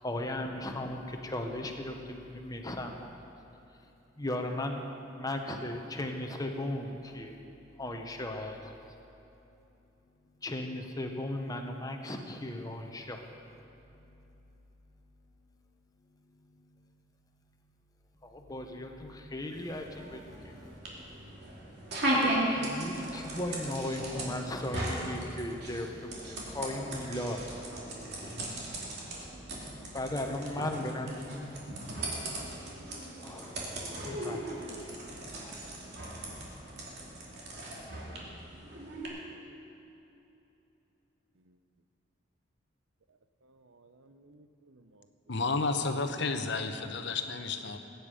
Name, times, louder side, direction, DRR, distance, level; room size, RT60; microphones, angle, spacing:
voice 1, 0.0-3.1 4.2-4.8 5.1-7.3 7.8-8.7 10.4-13.3 13.8-14.5 16.3-17.0 18.2-20.5 21.1-21.4 22.1-27.4 28.2-28.4 29.3-31.8 32.1-32.8 33.2-33.7 34.0-34.5, left 1 dB, 20° left, 3 dB, 1.1 m, -37 dB
sound 1, 19.5-39.1, right 1 dB, 55° right, 2.8 m, -37 dB
voice 2, 38.2-38.8 39.3-39.6 43.4-45.0, right 2 dB, 85° right, 9 dB, 0.8 m, -60 dB
voice 3, 45.3-47.8, left 3 dB, 65° left, 7 dB, 0.9 m, -31 dB
20.5 x 9.5 x 5.1 m, 2.9 s
head